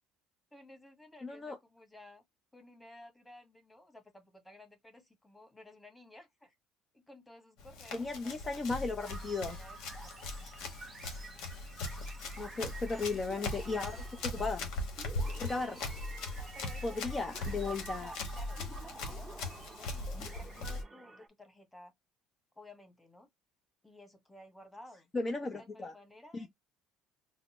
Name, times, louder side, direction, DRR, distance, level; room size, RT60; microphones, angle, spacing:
voice 1, 0.5-2.2 2.5-6.5 6.9-8.8 9.3-9.8 10.0-10.2 12.9-13.2 16.5-21.9 22.5-23.3 23.8-25.1 25.4-26.5, left 1 dB, 10° left, 1.6 m, -55 dB
voice 2, 1.2-1.6 7.9-9.6 12.4-14.7 15.4-15.8 16.8-18.1 25.1-25.9 26.3-26.5, left 3 dB, 30° left, 0.7 m, -36 dB
Run, 7.6-20.8, left 2 dB, 75° left, 1.2 m, -40 dB
sound 1, 9.0-21.3, right 4 dB, 25° right, 0.6 m, -50 dB
3.9 x 2.1 x 3.0 m
supercardioid pair, 100°, 0 cm